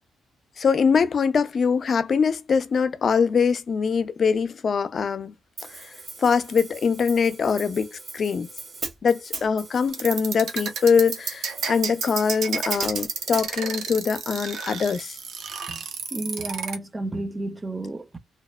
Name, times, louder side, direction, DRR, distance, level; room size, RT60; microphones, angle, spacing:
voice 1, 0.6-5.3 5.8-5.9 6.2-8.5 9.0-15.2, left 6 dB, 45° left, 0.4 m, -23 dB
Hi-hat, 5.6-13.5, right 3 dB, 40° right, 0.9 m, -39 dB
sound 1, 9.9-16.8, right 6 dB, 75° right, 0.7 m, -31 dB
voice 2, 16.1-18.2, right 2 dB, 20° right, 0.4 m, -32 dB
2.7 x 2.0 x 2.2 m
cardioid pair, 90°, 0 cm